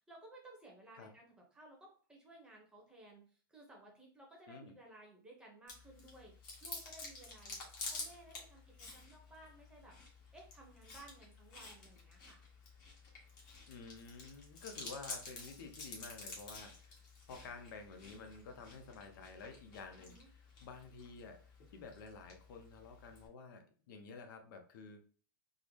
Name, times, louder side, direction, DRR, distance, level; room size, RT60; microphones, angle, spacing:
voice 1, 0.0-6.3 6.6-7.6 7.8-10.0 10.3-12.4 19.9-20.3, right 2 dB, 5° right, -1 dB, 0.8 m, -58 dB
Chewing mastication, 5.7-23.3, left 3 dB, 40° left, 1.3 m, -51 dB
voice 2, 13.7-17.0 17.3-21.4 21.7-25.1, left 4 dB, 65° left, 5 dB, 0.6 m, -51 dB
3.8 x 2.0 x 3.1 m, 0.43 s
supercardioid pair, 155°, 12 cm